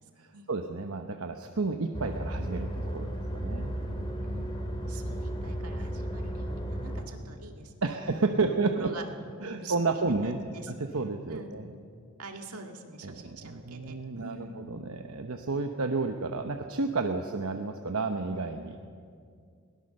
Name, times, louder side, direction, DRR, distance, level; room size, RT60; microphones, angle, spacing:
voice 1, 0.2-3.8 7.8-8.9 9.4-10.4 10.7-11.6 13.0-14.4 14.7-18.8, right 3 dB, 75° right, 5 dB, 0.9 m, -31 dB
sound 1, 1.9-7.0, equal, 25° left, 2.3 m, -34 dB
voice 2, 4.2-7.9 8.5-9.1 9.4-10.7 11.3-11.5 12.2-14.6, right 3 dB, 90° right, 4 dB, 1.9 m, -45 dB
21.5 x 18.5 x 6.6 m, 2.3 s
head